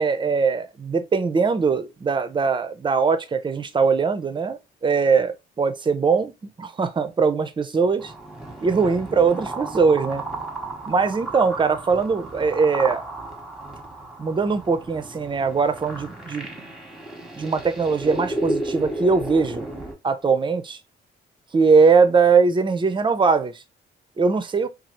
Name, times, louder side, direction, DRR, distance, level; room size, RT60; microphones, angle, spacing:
voice 1, 0.0-8.1 8.6-10.2 10.9-13.0 14.2-16.5 17.4-19.7 20.0-20.8 21.5-23.6 24.2-24.7, right 5 dB, 25° right, 0.4 m, -21 dB
sound 1, 8.0-19.9, right 1 dB, ahead, 0.9 m, -33 dB
2.7 x 2.4 x 2.9 m
cardioid pair, 90°, 20 cm